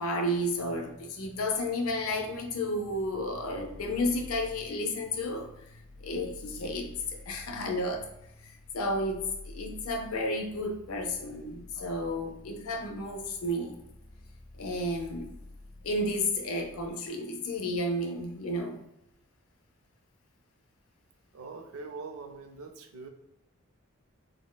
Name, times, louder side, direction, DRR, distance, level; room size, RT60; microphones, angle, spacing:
voice 1, 0.0-5.5 6.0-8.1 8.4-13.8 14.6-15.3 15.8-18.8, left 1 dB, 80° left, 4 dB, 0.5 m, -32 dB
sound 1, 0.5-16.9, left 2 dB, 50° left, 1.0 m, -50 dB
voice 2, 21.3-23.1, right 4 dB, 80° right, 6 dB, 0.4 m, -43 dB
4.0 x 2.0 x 2.2 m, 0.81 s
head